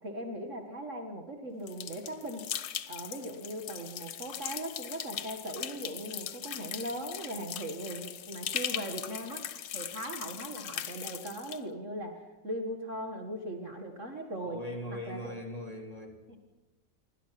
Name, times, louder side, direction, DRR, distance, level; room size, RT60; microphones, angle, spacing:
voice 1, 0.0-2.5 2.9-9.5 9.7-14.6 14.9-15.3 16.3-16.4, right 1 dB, 40° right, 4 dB, 2.2 m, -39 dB
sound 1, 1.7-11.6, left 10 dB, 85° left, 1.7 m, -39 dB
voice 2, 14.4-16.2, left 1 dB, 20° left, 2 dB, 3.6 m, -40 dB
27.0 x 24.0 x 6.0 m, 1.1 s
omnidirectional pair, 2.0 m